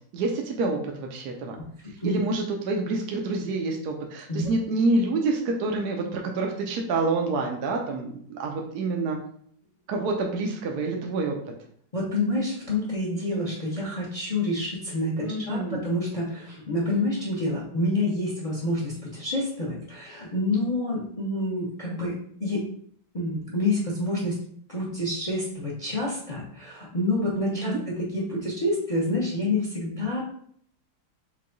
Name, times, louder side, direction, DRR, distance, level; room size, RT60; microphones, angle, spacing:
voice 1, 0.1-1.6 1.9-9.2 9.9-11.4 15.2-15.9 27.7-27.8, right 3 dB, 70° right, 1 dB, 1.0 m, -27 dB
voice 2, 11.9-22.7 23.1-24.4 24.7-30.2, left 1 dB, 50° left, -4 dB, 0.4 m, -28 dB
4.6 x 2.3 x 3.9 m, 0.62 s
omnidirectional pair, 2.2 m